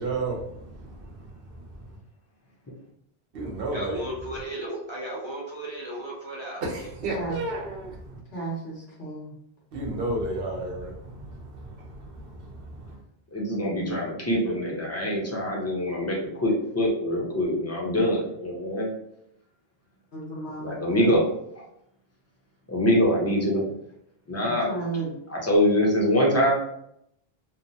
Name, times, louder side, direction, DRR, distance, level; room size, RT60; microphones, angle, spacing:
voice 1, 0.0-1.8 3.3-4.0 6.6-8.2 9.7-13.0, right 2 dB, 65° right, 0.8 m, -33 dB
voice 2, 3.7-6.9, right 1 dB, 40° right, 0.4 m, -35 dB
voice 3, 7.1-7.4 8.3-9.3 20.1-21.2 24.5-25.2, right 3 dB, 80° left, 1.3 m, -34 dB
voice 4, 13.3-18.9 20.6-21.2 21.6-21.7 22.7-23.6 24.3-24.7 25.3-26.5, equal, 20° left, 0.6 m, -24 dB
2.9 x 2.1 x 2.6 m
omnidirectional pair, 1.0 m